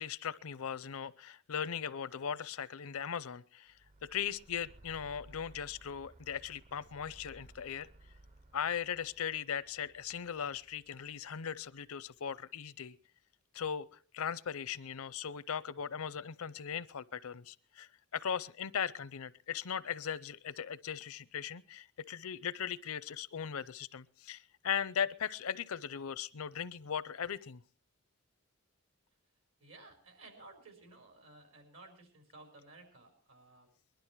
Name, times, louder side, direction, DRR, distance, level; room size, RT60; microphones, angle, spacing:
voice 1, 0.0-3.7 4.0-7.9 8.5-13.0 13.5-27.6, left 8 dB, 80° left, 18 dB, 0.6 m, -38 dB
sound 1, 3.7-12.0, right 1 dB, 35° right, 0.7 m, -59 dB
voice 2, 29.6-33.7, right 2 dB, 70° right, 5 dB, 4.9 m, -56 dB
21.0 x 11.5 x 4.6 m, 0.40 s
head